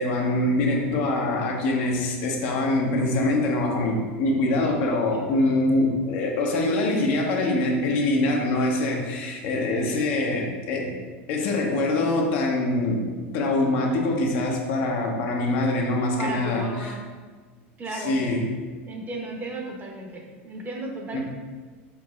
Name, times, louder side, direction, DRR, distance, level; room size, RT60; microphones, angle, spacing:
voice 1, 0.0-11.0 11.3-13.1 13.3-17.0 17.9-18.5 21.1-21.2, left 2 dB, 65° left, 0 dB, 0.8 m, -24 dB
voice 2, 16.2-17.0 17.8-18.2 18.9-21.2, right 2 dB, 25° right, 0 dB, 0.8 m, -34 dB
4.5 x 4.0 x 2.3 m, 1.4 s
hypercardioid pair, 100°, 7 cm